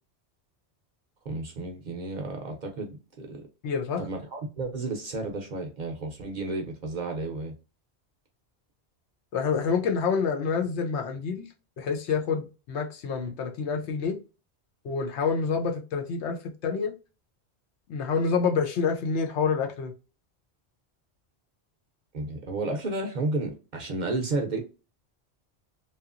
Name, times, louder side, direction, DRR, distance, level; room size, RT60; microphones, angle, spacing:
voice 1, 1.2-3.5 4.0-7.5 22.1-24.6, right 2 dB, 55° right, 0.6 m, -32 dB
voice 2, 3.6-4.0 9.3-11.5 11.8-14.2 14.8-16.9 17.9-19.9, left 5 dB, 80° left, 0.9 m, -27 dB
2.8 x 2.4 x 2.4 m
omnidirectional pair, 1.1 m